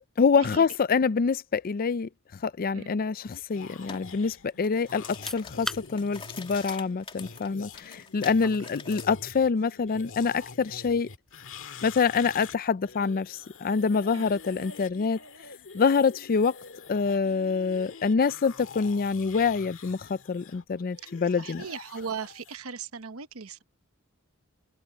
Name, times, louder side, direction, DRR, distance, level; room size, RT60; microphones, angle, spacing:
voice 1, 0.2-2.1 2.4-11.1 11.8-15.2 15.7-16.6 16.9-21.6, left 5 dB, 40° left, 0.4 m, -26 dB
sound 1, 3.3-12.5 12.8-22.6, left 5 dB, 65° left, 1.8 m, -46 dB
sound 2, 3.9-4.1 4.5-9.1, left 5 dB, 25° left, 2.5 m, -44 dB
sound 3, 5.0-17.7, left 1 dB, ahead, 7.0 m, -47 dB
voice 2, 21.4-23.6, right 6 dB, 70° right, 1.0 m, -38 dB
open air
head